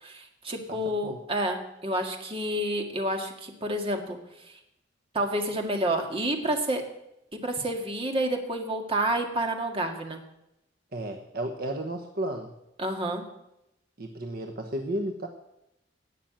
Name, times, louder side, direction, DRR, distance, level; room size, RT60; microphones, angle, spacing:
voice 1, 0.0-4.2 5.1-6.8 7.3-10.2 12.8-13.3, right 1 dB, 30° right, 3 dB, 1.9 m, -29 dB
voice 2, 10.9-12.5 14.0-15.3, right 1 dB, 55° right, 4 dB, 1.1 m, -33 dB
18.0 x 6.1 x 8.9 m, 0.86 s
head